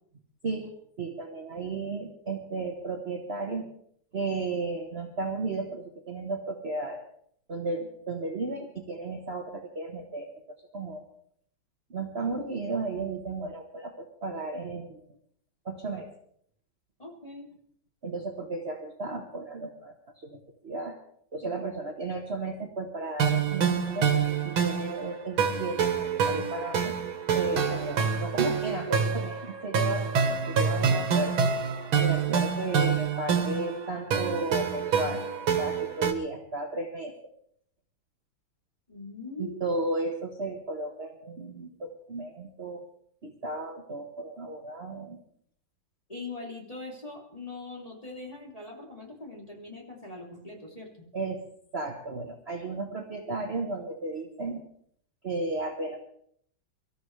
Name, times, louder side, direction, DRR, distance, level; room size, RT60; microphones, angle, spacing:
voice 1, 0.4-3.6 4.1-7.0 7.5-10.3 10.7-11.0 11.9-15.0 15.6-16.1 18.0-21.0 21.3-24.2 24.4-26.9 27.3-31.4 32.0-35.3 35.6-37.1 39.4-42.8 43.2-45.2 51.1-51.4 51.7-54.6 55.2-56.0, right 3 dB, 35° right, 2 dB, 1.4 m, -34 dB
voice 2, 17.0-17.5 21.4-21.5 38.9-39.8 46.1-50.9, left 3 dB, 15° left, -1 dB, 3.2 m, -41 dB
sound 1, 23.2-36.1, right 6 dB, 90° right, 2.2 m, -27 dB
25.0 x 13.5 x 3.3 m, 0.65 s
omnidirectional pair, 2.2 m